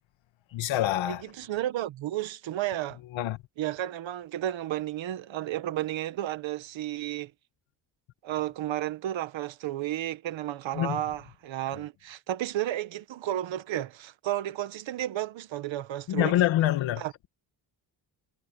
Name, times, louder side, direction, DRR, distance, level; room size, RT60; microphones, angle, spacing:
voice 1, 0.5-1.2 3.1-3.4 10.7-11.0 16.1-17.0, left 13 dB, 90° left, 1.8 m, -25 dB
voice 2, 1.1-3.0 3.6-7.3 8.2-16.4 17.0-17.3, right 13 dB, 80° right, 1.6 m, -32 dB
cardioid pair, 135°, 45 cm